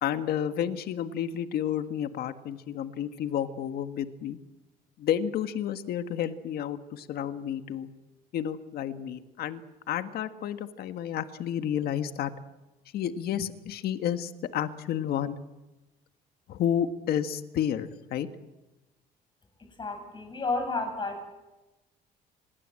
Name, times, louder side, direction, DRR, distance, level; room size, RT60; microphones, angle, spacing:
voice 1, 0.0-4.4 5.0-7.9 8.3-9.6 9.9-12.3 12.9-15.4 16.5-18.3, left 9 dB, 65° left, 9 dB, 1.7 m, -31 dB
voice 2, 19.6-21.3, left 3 dB, 25° left, 5 dB, 8.0 m, -32 dB
24.5 x 21.5 x 7.7 m, 1.1 s
cardioid pair, 110°, 17 cm